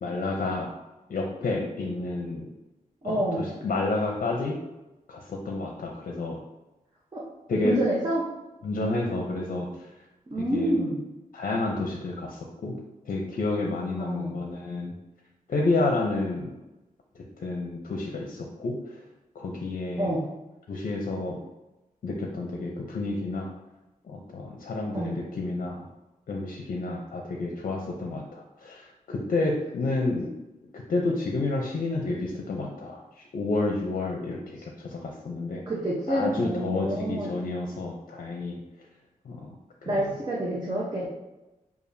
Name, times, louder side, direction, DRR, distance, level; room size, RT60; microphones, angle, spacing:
voice 1, 0.0-0.7 1.1-2.5 3.0-4.6 5.1-6.4 7.5-7.8 8.6-9.9 10.4-10.7 11.3-12.8 13.1-14.9 15.5-16.5 17.1-19.0 19.3-20.1 20.7-21.4 22.0-23.5 24.0-25.9 26.3-30.4 30.7-35.6 36.1-38.6 39.2-39.5 39.8-40.1, left 2 dB, 65° left, 1 dB, 0.6 m, -30 dB
voice 2, 3.0-3.4 7.1-7.2 7.6-8.3 10.3-11.0 14.0-14.4 20.0-20.2 24.9-25.2 35.7-37.3 39.9-41.1, right 1 dB, 30° right, -5 dB, 0.8 m, -28 dB
6.7 x 2.4 x 2.6 m, 1.0 s
wide cardioid pair, 120°, 15 cm